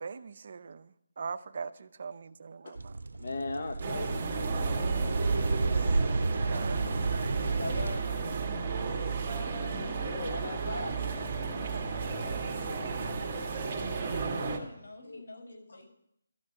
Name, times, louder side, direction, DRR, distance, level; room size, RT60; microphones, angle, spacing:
voice 1, 0.0-2.9 6.5-7.4 11.7-11.8, right 5 dB, 45° right, 14 dB, 0.6 m, -41 dB
sound 1, 2.8-8.0, right 3 dB, 85° right, 0.6 m, -31 dB
voice 2, 3.2-7.0 7.4-8.3 9.5-11.0 12.0-14.0 15.0-15.2 15.7-15.8, left 3 dB, 60° left, 5 dB, 1.1 m, -42 dB
sound 2, 3.8-14.6, right 4 dB, 25° right, 1.8 m, -33 dB
voice 3, 14.3-15.8, left 2 dB, 90° left, 1 dB, 5.5 m, -50 dB
13.0 x 6.2 x 9.7 m, 0.75 s
hypercardioid pair, 170°, 0 cm